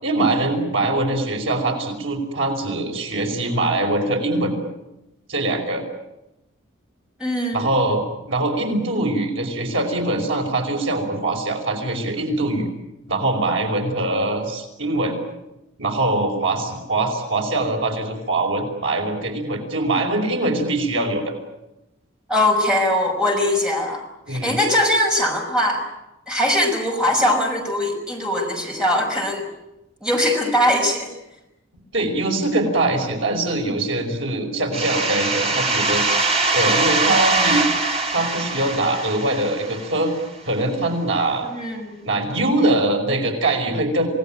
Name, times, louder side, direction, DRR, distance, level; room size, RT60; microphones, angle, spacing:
voice 1, 0.0-4.6 5.3-5.8 7.5-12.7 13.1-15.2 15.8-21.3 24.3-24.5 31.9-36.2 36.5-37.6 38.1-40.1 40.5-41.5 42.0-44.1, right 2 dB, 70° right, 2 dB, 5.4 m, -22 dB
voice 2, 7.2-7.6 22.3-24.0 24.3-25.8 26.3-29.5 30.0-31.1 41.4-42.0, left 1 dB, 5° right, 0 dB, 6.0 m, -21 dB
sound 1, 34.7-40.2, right 3 dB, 30° right, 3.9 m, -22 dB
28.0 x 19.0 x 9.1 m, 0.93 s
head